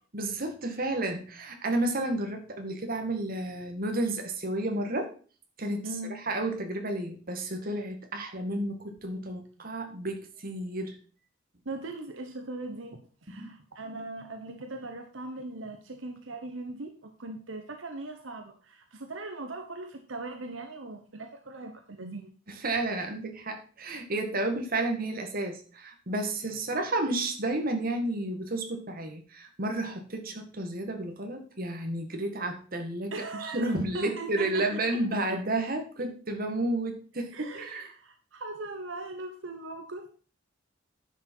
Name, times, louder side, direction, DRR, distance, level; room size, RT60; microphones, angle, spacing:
voice 1, 0.1-5.1 5.6-5.9 6.3-11.0 13.3-13.5 22.5-37.9, right 2 dB, 50° right, 4 dB, 1.9 m, -31 dB
voice 2, 5.8-6.2 11.6-22.3 33.1-35.0 35.3-35.4 37.3-40.1, right 2 dB, 75° right, 5 dB, 1.2 m, -40 dB
10.0 x 6.4 x 4.6 m, 0.39 s
head